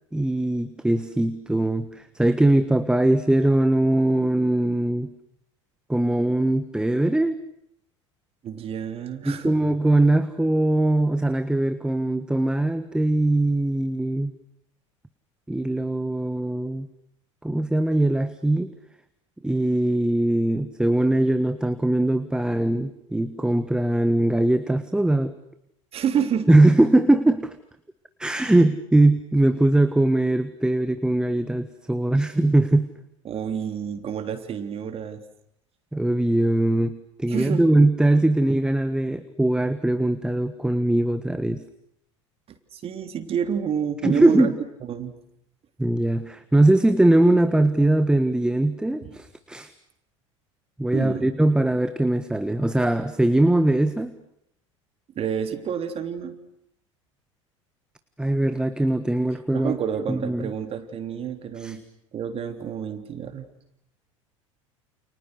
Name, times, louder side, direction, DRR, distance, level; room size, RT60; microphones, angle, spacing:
voice 1, 0.1-5.1 5.9-7.4 9.2-14.3 15.5-16.9 17.4-18.7 19.4-25.4 26.5-27.5 28.2-32.9 35.9-41.6 44.0-44.5 45.8-49.7 50.8-54.1 58.2-59.8 60.1-60.5 61.6-61.8, right 1 dB, 5° right, 11 dB, 1.5 m, -21 dB
voice 2, 8.4-9.6 25.9-26.5 33.3-35.2 37.3-37.6 42.7-44.5 44.9-45.1 49.0-49.2 50.9-51.3 55.2-56.4 59.5-61.8 62.1-63.5, right 8 dB, 35° right, 8 dB, 3.4 m, -29 dB
29.5 x 29.0 x 6.6 m, 0.75 s
figure-of-eight pair, 70°, 16 cm